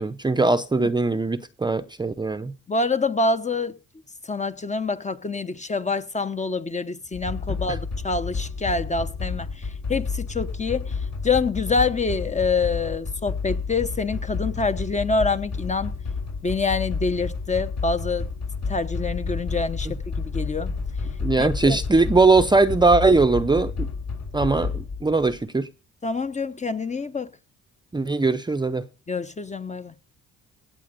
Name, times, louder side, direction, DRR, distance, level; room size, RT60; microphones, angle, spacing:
voice 1, 0.0-2.5 21.2-23.9 24.3-24.7 25.0-25.7 27.9-28.8, right 3 dB, 15° right, 0.7 m, -20 dB
voice 2, 2.7-3.8 4.3-10.9 11.2-15.9 16.4-18.3 18.7-20.7 21.4-21.8 26.0-27.3 29.1-29.9, left 4 dB, 25° left, 0.9 m, -26 dB
sound 1, 7.1-25.4, left 4 dB, 60° left, 5.8 m, -30 dB
16.5 x 7.5 x 5.1 m
cardioid pair, 90°, 30 cm